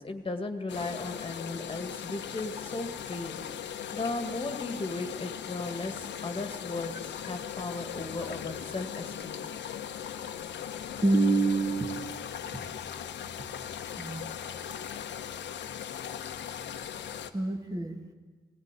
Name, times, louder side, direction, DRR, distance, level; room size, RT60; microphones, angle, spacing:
voice 1, 0.0-3.4 3.9-9.5, left 2 dB, 30° left, 6 dB, 1.9 m, -36 dB
sound 1, 0.7-17.3, left 9 dB, 85° left, 1.1 m, -39 dB
voice 2, 11.0-12.2 14.0-14.3 17.3-18.0, right 3 dB, 20° right, 3 dB, 2.0 m, -27 dB
20.0 x 17.5 x 9.9 m, 1.5 s
cardioid pair, 95°, 18 cm